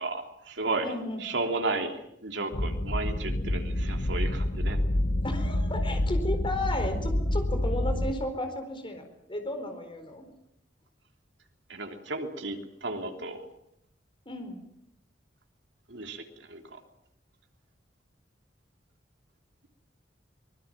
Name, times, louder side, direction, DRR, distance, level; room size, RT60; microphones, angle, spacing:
voice 1, 0.0-0.9 1.2-4.8 11.7-13.4 15.9-16.8, right 2 dB, 75° right, 4 dB, 3.3 m, -33 dB
voice 2, 0.8-1.2 5.2-10.2 14.3-14.6, left 1 dB, 30° left, 6 dB, 4.4 m, -34 dB
sound 1, 2.5-8.1, left 1 dB, 60° left, 1.7 m, -28 dB
25.0 x 21.0 x 7.5 m, 0.74 s
head